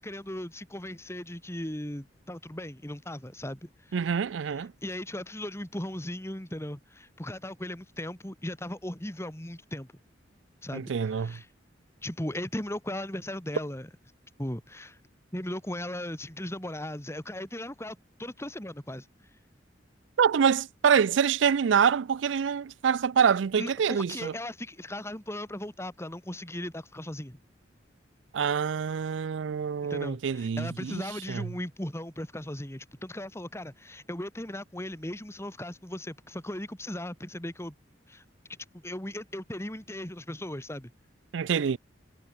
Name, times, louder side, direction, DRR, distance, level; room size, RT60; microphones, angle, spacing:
voice 1, 0.0-4.0 4.4-9.9 10.6-11.5 12.0-13.9 14.4-15.0 15.3-19.1 23.6-27.4 29.8-37.7 38.1-38.2 38.8-40.9, left 1 dB, 15° left, 2.6 m, -37 dB
voice 2, 3.9-4.7 10.7-11.4 20.2-24.3 28.3-31.0 31.3-31.4 41.3-41.8, right 7 dB, 85° right, 0.4 m, -26 dB
head